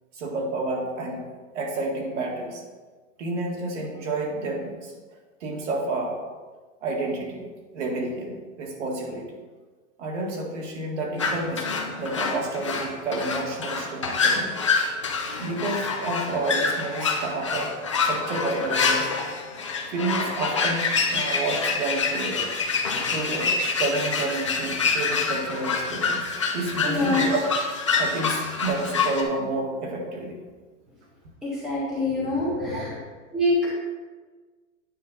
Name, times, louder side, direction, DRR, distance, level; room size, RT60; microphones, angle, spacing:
voice 1, 0.1-1.2 1.5-2.6 3.2-4.9 5.4-6.2 6.8-7.5 7.7-9.3 10.0-14.5 15.4-19.1 19.9-22.5 23.1-27.5 28.0-30.4 32.4-32.9, right 2 dB, 55° right, 0 dB, 2.0 m, -30 dB
sound 1, 11.2-29.2, left 4 dB, 25° left, 0.3 m, -26 dB
voice 2, 26.9-27.3 31.4-32.9 33.3-33.7, left 2 dB, ahead, -7 dB, 0.7 m, -25 dB
9.3 x 5.4 x 4.0 m, 1.4 s
supercardioid pair, 170°, 41 cm